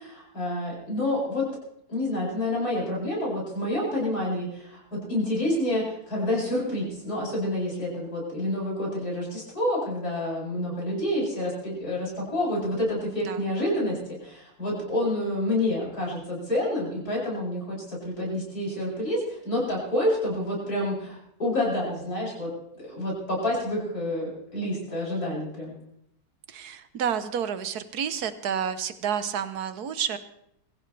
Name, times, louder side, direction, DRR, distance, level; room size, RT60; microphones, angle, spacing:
voice 1, 0.0-1.5 1.9-22.5 22.7-25.7, left 1 dB, 75° left, -5 dB, 8.4 m, -28 dB
voice 2, 26.5-30.2, right 8 dB, 80° right, 11 dB, 1.5 m, -30 dB
23.5 x 15.5 x 3.3 m, 0.75 s
omnidirectional pair, 1.6 m